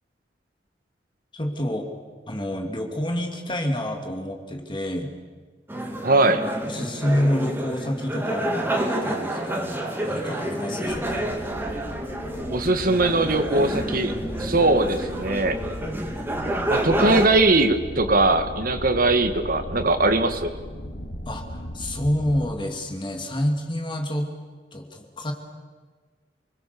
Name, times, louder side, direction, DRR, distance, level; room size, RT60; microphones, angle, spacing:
voice 1, 1.3-1.9 2.3-5.1 6.6-11.3 21.3-24.3 24.7-25.3, left 1 dB, 30° left, 4 dB, 2.6 m, -28 dB
sound 1, 5.7-17.3, right 1 dB, 15° right, 2.5 m, -29 dB
voice 2, 6.0-6.4 12.5-14.1 14.4-15.6 16.7-20.5, right 2 dB, 55° right, 8 dB, 1.8 m, -20 dB
sound 2, 10.9-22.4, equal, 80° left, 2.9 m, -37 dB
29.0 x 21.0 x 7.0 m, 1.5 s
head